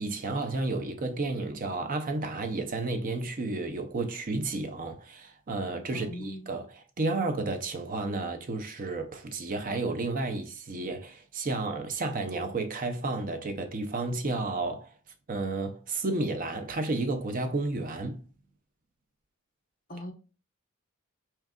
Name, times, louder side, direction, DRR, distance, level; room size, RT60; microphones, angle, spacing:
voice 1, 0.0-14.9 15.3-18.2, right 3 dB, 40° right, 0.6 m, -32 dB
voice 2, 5.9-6.5 19.9-20.1, equal, 40° left, 0.8 m, -39 dB
4.5 x 3.6 x 2.2 m
head